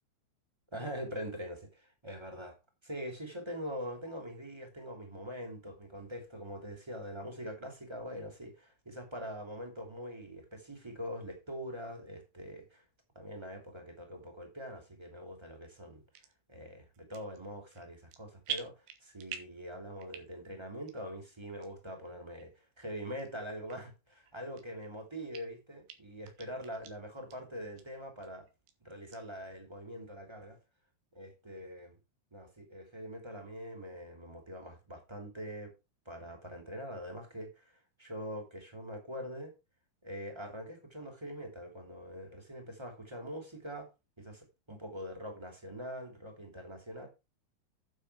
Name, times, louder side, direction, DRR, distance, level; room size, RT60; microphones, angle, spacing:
voice 1, 0.7-2.6 2.8-12.8 13.1-16.0 16.5-28.5 28.8-30.6 31.1-32.0 32.3-35.7 36.0-37.6 38.0-39.5 40.0-43.9 44.2-47.1, equal, 10° right, 2.3 m, -43 dB
sound 1, 16.1-16.3 16.9-17.4 17.7-18.2 18.5-19.6 20.0-20.5 20.9-21.0 21.6-21.7 22.4-22.5 23.2-23.3 23.7-23.8 24.3-24.9 25.3-25.4 25.9-26.0 26.3-26.9 27.3-27.4 27.8-27.9 28.2-28.7 29.1-29.2, right 9 dB, 90° right, 3.4 m, -43 dB
9.3 x 7.2 x 4.8 m
omnidirectional pair, 4.5 m